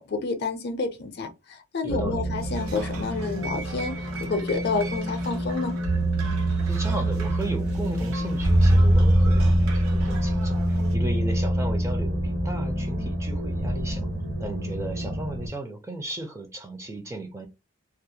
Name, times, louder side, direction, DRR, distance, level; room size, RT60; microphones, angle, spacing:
voice 1, 0.0-5.8, left 3 dB, 50° left, 0.4 m, -29 dB
voice 2, 1.8-2.2 6.6-14.1 14.4-17.5, right 2 dB, 15° right, 0.4 m, -35 dB
sound 1, 1.9-15.5, right 1 dB, 60° right, 1.2 m, -25 dB
sound 2, 2.4-11.0, right 4 dB, 85° right, 0.6 m, -41 dB
2.3 x 2.0 x 2.7 m
head